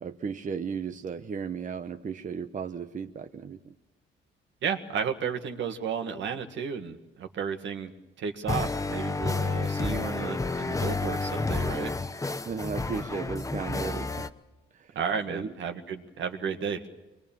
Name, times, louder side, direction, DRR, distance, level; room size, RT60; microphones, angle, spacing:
voice 1, 0.0-3.7 12.4-14.3 14.7-15.0 15.3-15.5, right 6 dB, 40° right, 7 dB, 1.0 m, -35 dB
voice 2, 4.6-7.9 8.2-11.9 15.0-16.8, right 7 dB, 70° right, 6 dB, 1.9 m, -33 dB
sound 1, 8.5-14.3, left 3 dB, 15° left, 0.9 m, -30 dB
24.0 x 21.0 x 7.4 m, 1.1 s
cardioid pair, 90°, 20 cm